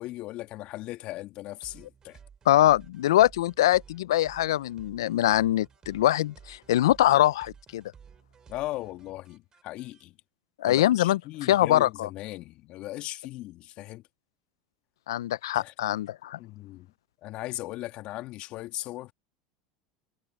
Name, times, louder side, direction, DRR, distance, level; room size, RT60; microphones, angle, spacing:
voice 1, 0.0-2.2 8.5-10.2 10.7-14.0 15.5-15.7 16.4-16.9 17.2-19.1, left 17 dB, 50° left, 2.2 m, -38 dB
sound 1, 1.6-10.0, right 7 dB, 30° right, 7.9 m, -54 dB
voice 2, 2.5-7.8 10.6-11.2 11.5-12.1 15.1-16.4, left 13 dB, 75° left, 0.8 m, -23 dB
hypercardioid pair, 85°, 2 cm